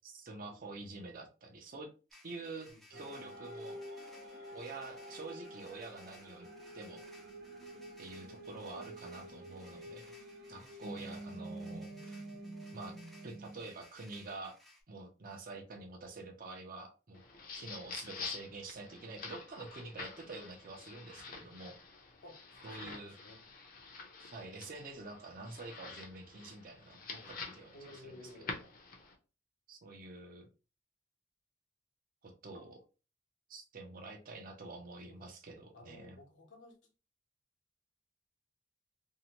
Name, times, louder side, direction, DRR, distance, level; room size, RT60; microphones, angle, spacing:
voice 1, 0.0-1.9 2.2-3.8 4.5-6.5 6.7-7.0 8.0-10.1 10.5-12.2 12.7-13.0 13.2-14.6 14.9-17.2 17.5-21.8 22.6-23.1 24.2-28.2 29.7-30.5 32.2-32.8 33.5-36.2, right 3 dB, 50° right, 3 dB, 0.6 m, -47 dB
sound 1, 2.1-14.8, left 2 dB, ahead, 0.4 m, -61 dB
voice 2, 2.7-3.3 10.6-11.0 11.5-11.7 17.5-17.8 22.2-22.4 22.7-23.4 27.1-27.3 27.7-28.6 35.2-35.3 35.7-36.8, left 2 dB, 80° left, 1 dB, 0.9 m, -56 dB
sound 2, 2.9-13.6, right 1 dB, 85° right, 0.8 m, -48 dB
sound 3, 17.1-29.1, left 4 dB, 50° left, 0.6 m, -48 dB
2.7 x 2.1 x 2.8 m, 0.34 s
head